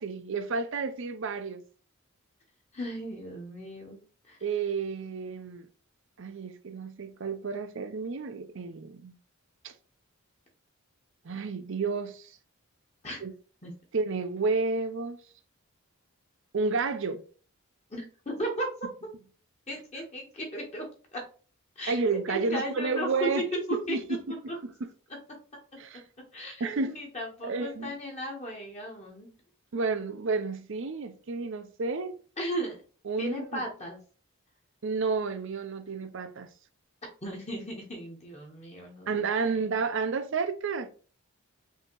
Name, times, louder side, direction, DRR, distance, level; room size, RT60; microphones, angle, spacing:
voice 1, 0.0-1.6 4.4-5.7 6.2-9.2 9.6-9.7 11.2-12.3 13.2-13.3 13.9-15.2 16.5-17.2 21.9-23.4 23.7-24.7 25.8-26.0 26.6-26.9 27.4-27.9 29.7-32.1 33.1-33.6 34.8-36.5 39.1-40.9, right 4 dB, 60° right, 0.5 m, -31 dB
voice 2, 2.7-4.0 4.3-4.4 13.0-13.2 13.6-13.7 17.9-18.7 19.0-19.1 19.7-21.2 21.8-22.0 22.3-23.4 23.7-24.0 26.3-29.3 32.4-32.8 33.2-34.0 37.2-39.5, equal, 30° left, 1.0 m, -36 dB
5.4 x 2.8 x 3.0 m
head